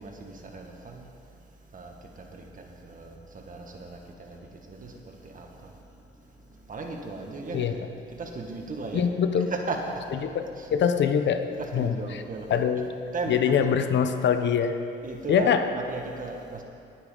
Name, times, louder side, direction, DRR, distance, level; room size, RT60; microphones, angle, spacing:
voice 1, 0.0-9.1 9.3-10.3 10.6-10.7 11.5-13.7 15.0-16.6, right 3 dB, 45° right, 2 dB, 1.8 m, -37 dB
voice 2, 8.9-9.5 10.3-11.5 11.7-11.9 12.5-12.9 13.3-14.8 15.3-15.6, left 7 dB, 65° left, 8 dB, 0.9 m, -23 dB
19.5 x 9.4 x 3.9 m, 2.6 s
cardioid pair, 90°, 20 cm